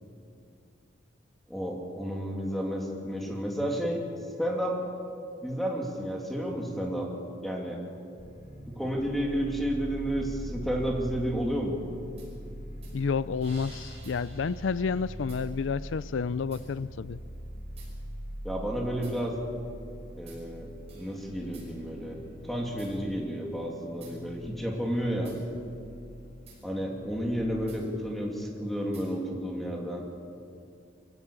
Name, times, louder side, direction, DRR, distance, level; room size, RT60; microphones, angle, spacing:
voice 1, 1.5-4.0 4.4-4.8 5.4-7.1 7.4-7.8 8.6-11.8 18.4-19.4 20.2-20.7 20.9-25.3 26.6-30.0, equal, ahead, -1 dB, 2.7 m, -31 dB
sound 1, 8.2-27.7, equal, 40° left, 4.6 m, -43 dB
sound 2, 12.2-12.3 12.8-13.0 13.4-15.9 16.5-16.7 17.8-18.0 19.0-19.2 20.3-20.4 20.9-23.0 24.0-24.2 25.3-25.4 26.5-26.6 27.7-27.9 28.9-29.1, right 4 dB, 30° right, 5.9 m, -54 dB
voice 2, 12.9-17.2, left 5 dB, 75° left, 17 dB, 0.4 m, -30 dB
24.0 x 15.5 x 8.9 m, 2.5 s
head